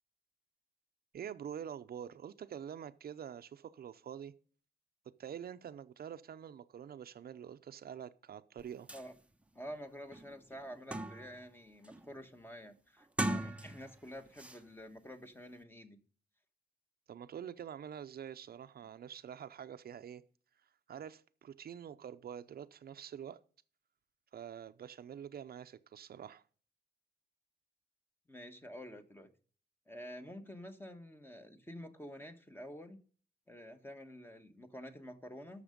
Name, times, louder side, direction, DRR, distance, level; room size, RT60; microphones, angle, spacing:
voice 1, 1.1-4.3 5.2-8.9 17.1-20.2 20.9-23.4 24.3-26.4, right 9 dB, 65° right, 0.6 m, -46 dB
sound 1, 8.6-8.7 8.9-9.1 9.6-9.7 10.1-11.4 11.8-12.2 13.0-14.0 14.4-14.6, right 1 dB, 5° right, 0.7 m, -39 dB
voice 2, 9.5-16.0 28.3-29.3 29.9-33.0 33.5-35.6, equal, 15° left, 1.3 m, -49 dB
12.0 x 6.7 x 5.2 m
wide cardioid pair, 120°, 17 cm